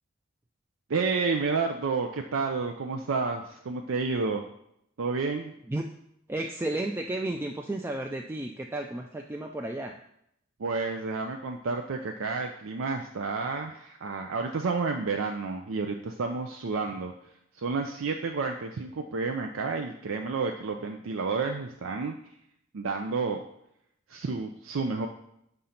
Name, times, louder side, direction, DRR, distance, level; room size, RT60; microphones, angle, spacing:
voice 1, 0.9-4.4 5.0-5.5 10.6-17.1 17.6-22.2 22.7-23.4 24.1-25.1, right 4 dB, 85° right, 4 dB, 0.5 m, -30 dB
voice 2, 6.3-10.0, right 1 dB, 10° right, 2 dB, 0.3 m, -33 dB
5.5 x 3.8 x 5.8 m, 0.75 s
head